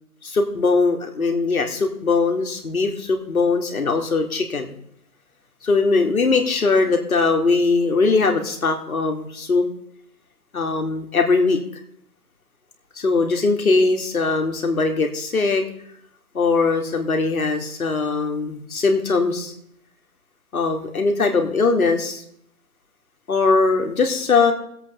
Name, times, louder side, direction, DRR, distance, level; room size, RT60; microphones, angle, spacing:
voice 1, 0.2-4.7 5.6-9.6 10.5-11.6 13.0-15.6 16.3-19.5 20.5-22.2 23.3-24.5, left 4 dB, 70° left, 3 dB, 2.8 m, -20 dB
21.5 x 8.3 x 3.5 m, 0.71 s
hypercardioid pair, 160°, 45 cm